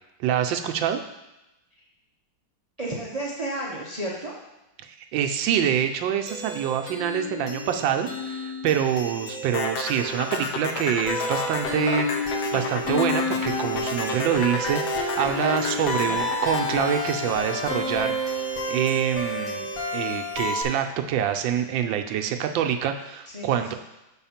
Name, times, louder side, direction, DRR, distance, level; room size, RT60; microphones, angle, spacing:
voice 1, 0.2-1.0 4.8-12.1 12.5-18.1 18.7-19.7 19.9-23.7, right 9 dB, 80° right, 6 dB, 1.3 m, -26 dB
voice 2, 2.8-4.3 23.3-23.7, right 1 dB, 45° right, -4 dB, 0.5 m, -32 dB
sound 1, 6.3-20.6, left 2 dB, 50° left, 1.3 m, -30 dB
sound 2, 9.5-17.9, left 5 dB, 65° left, 1.2 m, -31 dB
6.2 x 4.3 x 5.7 m, 0.96 s
omnidirectional pair, 2.1 m